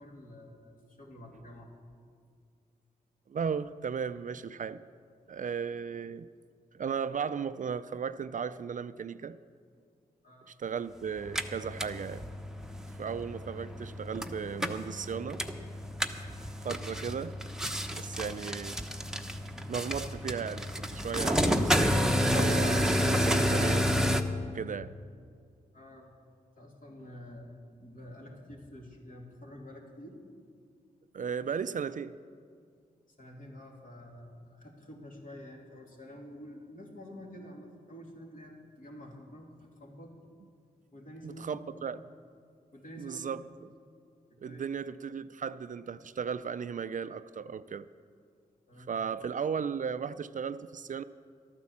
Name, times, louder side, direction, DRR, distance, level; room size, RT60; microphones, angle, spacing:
voice 1, 0.0-1.7 10.2-10.5 25.7-26.1 26.6-27.5 27.8-30.2 33.2-40.2 40.9-41.8 42.7-43.4 44.4-44.6 48.7-48.9, left 1 dB, 55° left, -1 dB, 2.8 m, -48 dB
voice 2, 3.3-4.8 5.3-6.3 6.7-9.4 10.5-12.2 13.0-15.4 16.6-17.4 17.9-18.8 19.7-23.9 24.4-24.9 31.1-32.2 41.2-42.0 43.0-43.7 44.4-47.9 48.8-51.0, right 6 dB, 50° right, 13 dB, 0.4 m, -36 dB
sound 1, 11.2-24.2, equal, 5° right, 0.9 m, -30 dB
12.5 x 9.4 x 7.3 m, 2.1 s
cardioid pair, 55°, 17 cm